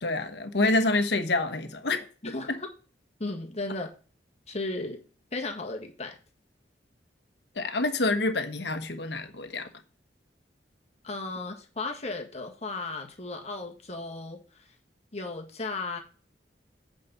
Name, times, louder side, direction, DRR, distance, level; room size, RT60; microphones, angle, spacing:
voice 1, 0.0-2.0 2.5-2.6 7.6-9.7, left 2 dB, 70° left, 1.3 m, -27 dB
voice 2, 2.2-2.7 3.2-3.9 4.5-5.0 5.3-6.2 11.0-14.6 15.1-16.0, left 3 dB, 35° left, 1.7 m, -35 dB
8.7 x 5.2 x 5.5 m
head